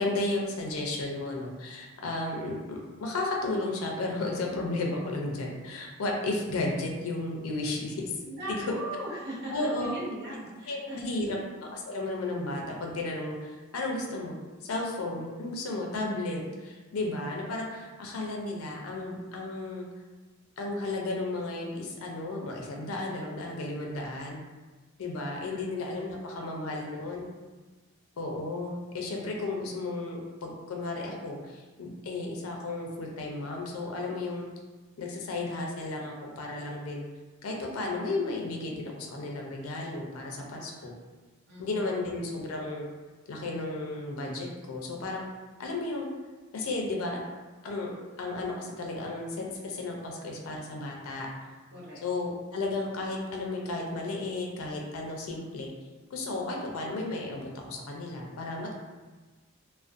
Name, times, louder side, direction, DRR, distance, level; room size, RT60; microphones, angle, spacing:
voice 1, 0.0-8.2 8.5-8.6 9.5-10.0 10.6-14.4 14.6-19.9 20.6-24.4 25.0-27.3 28.2-34.4 35.0-37.1 37.4-40.9 41.6-42.9 43.3-45.3 45.6-46.1 46.5-47.2 47.6-47.9 48.2-51.3 52.0-55.7 56.1-58.7, left 2 dB, 80° left, 0 dB, 0.4 m, -33 dB
voice 2, 8.2-11.0 25.4-25.6 26.5-26.7 40.5-40.7 41.5-41.6 51.7-52.0, right 1 dB, 50° right, -7 dB, 0.6 m, -39 dB
2.4 x 2.1 x 2.4 m, 1.3 s
head